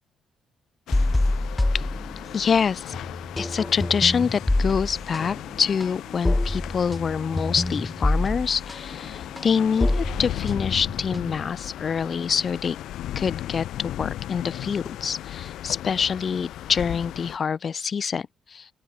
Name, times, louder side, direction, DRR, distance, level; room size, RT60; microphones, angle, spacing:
sound 1, 0.9-17.4, left 13 dB, 80° left, 1.5 m, -36 dB
sound 2, 0.9-2.6 2.9-11.6, left 2 dB, 10° left, 3.3 m, -26 dB
voice 1, 2.3-2.9 3.4-12.8 13.2-18.7, left 6 dB, 45° left, 1.7 m, -26 dB
open air
cardioid pair, 90°, 0 cm